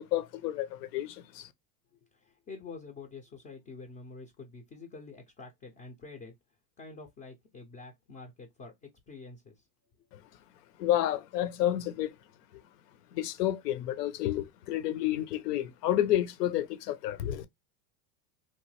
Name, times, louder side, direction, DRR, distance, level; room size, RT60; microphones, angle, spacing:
voice 1, 0.0-1.5 10.8-12.1 13.1-17.5, left 12 dB, 85° left, 0.7 m, -30 dB
voice 2, 2.1-6.4 6.8-9.6, left 4 dB, 20° left, 0.4 m, -47 dB
3.0 x 2.1 x 3.1 m
supercardioid pair, 130°, 47 cm